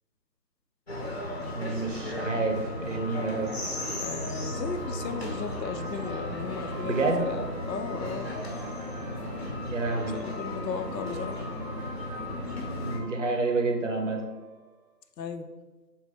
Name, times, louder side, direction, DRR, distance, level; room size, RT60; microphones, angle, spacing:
sound 1, 0.9-13.0, left 1 dB, 40° left, 0.6 m, -35 dB
voice 1, 1.5-3.5 6.8-7.2 9.7-10.2 12.8-14.2, right 3 dB, 50° right, 2 dB, 0.6 m, -28 dB
sound 2, 3.0-14.7, right 4 dB, 80° right, 0.8 m, -46 dB
voice 2, 4.0-8.4 10.1-11.5 15.2-15.5, left 5 dB, 85° left, 8 dB, 0.5 m, -35 dB
3.8 x 2.9 x 3.3 m, 1.2 s
figure-of-eight pair, 160°, 49 cm